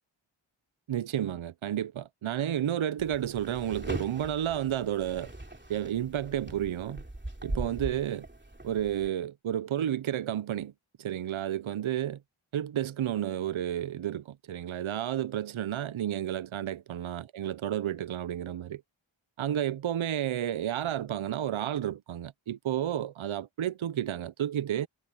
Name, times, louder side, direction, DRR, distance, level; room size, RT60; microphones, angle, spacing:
voice 1, 0.9-5.3 5.7-7.0 7.4-8.3 8.6-10.7 11.0-12.2 12.5-18.8 19.4-24.9, right 11 dB, 75° right, 0.6 m, -31 dB
sound 1, 3.0-9.1, right 1 dB, 20° right, 2.8 m, -40 dB
wide cardioid pair, 50°, 49 cm